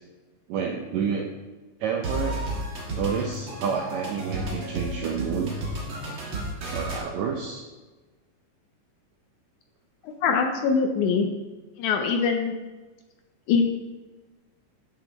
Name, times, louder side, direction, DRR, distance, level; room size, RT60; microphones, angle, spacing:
voice 1, 0.5-1.3 1.8-2.4 3.0-5.5 6.7-7.6, right 6 dB, 80° right, 2 dB, 1.6 m, -29 dB
sound 1, 2.0-7.0, right 1 dB, 45° right, 2.0 m, -32 dB
voice 2, 10.2-11.3 11.8-12.5 13.5-13.6, left 5 dB, 75° left, 4 dB, 1.8 m, -23 dB
11.0 x 6.5 x 3.0 m, 1.2 s
omnidirectional pair, 3.9 m